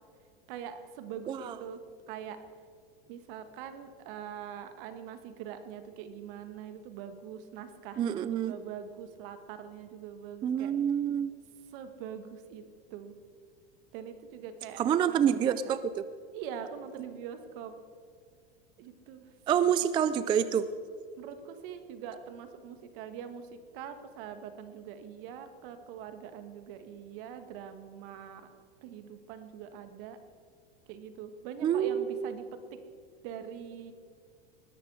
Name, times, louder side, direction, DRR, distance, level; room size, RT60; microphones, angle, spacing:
voice 1, 0.5-1.8 2.1-2.4 3.1-10.7 11.7-12.6 12.9-13.2 13.9-15.8 16.3-17.7 18.8-19.3 21.2-28.5 28.8-30.2 30.9-32.4 33.2-33.9, right 8 dB, 60° right, 9 dB, 1.8 m, -43 dB
voice 2, 8.0-8.5 10.4-11.4 14.8-16.0 19.5-20.7 31.6-32.3, right 9 dB, 15° right, 13 dB, 0.3 m, -27 dB
20.0 x 13.0 x 4.9 m, 2.1 s
supercardioid pair, 140°, 31 cm